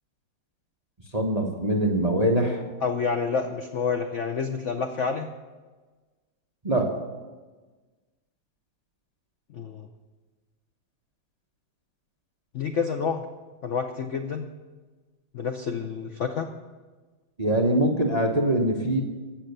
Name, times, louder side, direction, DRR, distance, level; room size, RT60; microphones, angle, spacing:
voice 1, 1.1-2.6 6.6-6.9 17.4-19.0, right 1 dB, 30° right, 1 dB, 0.8 m, -23 dB
voice 2, 2.8-5.3 9.5-9.9 12.5-13.2 13.6-14.5 15.3-16.5, left 5 dB, 70° left, 6 dB, 0.7 m, -28 dB
16.0 x 6.6 x 6.7 m, 1.3 s
omnidirectional pair, 2.2 m